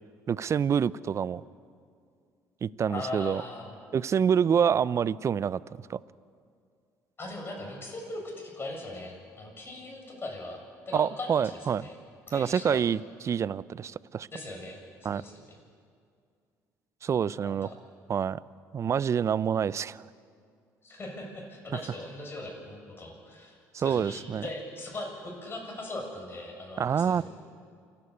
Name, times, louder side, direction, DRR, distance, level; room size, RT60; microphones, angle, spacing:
voice 1, 0.3-1.4 2.6-3.4 3.9-5.6 5.9-6.0 10.9-11.8 12.3-14.3 15.0-15.2 17.0-17.7 18.1-18.4 18.7-20.0 23.7-24.4 26.8-27.3, right 7 dB, 40° right, 20 dB, 0.5 m, -27 dB
voice 2, 2.9-3.7 7.2-10.6 10.9-12.0 12.3-12.8 14.3-14.8 15.1-15.6 17.3-17.7 20.8-27.3, left 2 dB, 30° left, 0 dB, 7.6 m, -40 dB
28.5 x 11.5 x 8.6 m, 2.3 s
supercardioid pair, 70°, 7 cm